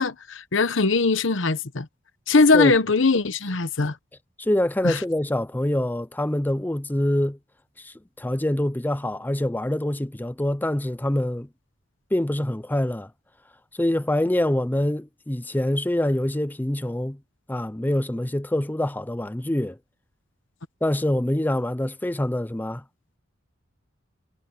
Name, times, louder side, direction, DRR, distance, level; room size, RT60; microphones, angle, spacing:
voice 1, 0.0-1.9 2.3-4.0 4.8-5.0, left 3 dB, 65° left, 1.0 m, -20 dB
voice 2, 4.4-7.4 7.8-11.5 12.1-13.1 13.8-17.2 17.5-19.8 20.8-22.8, left 1 dB, 10° left, 0.5 m, -25 dB
head